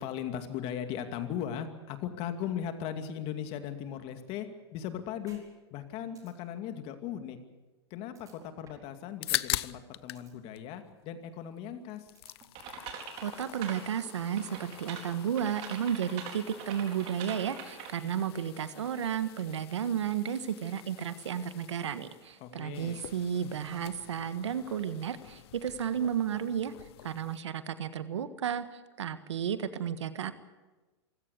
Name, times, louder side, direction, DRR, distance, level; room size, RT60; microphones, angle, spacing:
voice 1, 0.0-5.4 5.7-7.4 7.9-12.1 22.4-23.0, left 9 dB, 40° left, 8 dB, 2.4 m, -38 dB
sound 1, 5.3-5.4 5.8-5.9 6.1-6.3 8.1-8.9 9.3-9.4 9.8-10.3 12.1-12.9, right 6 dB, 25° right, 4.6 m, -57 dB
sound 2, 9.0-10.3 10.6-11.6 11.9-27.4, left 16 dB, 60° left, 0.7 m, -43 dB
sound 3, 12.5-13.9 14.4-18.1, right 7 dB, 45° right, 4.5 m, -44 dB
voice 2, 13.2-30.3, right 8 dB, 90° right, 11 dB, 1.6 m, -33 dB
25.0 x 16.5 x 8.4 m, 1.2 s
hypercardioid pair, 130°, 14 cm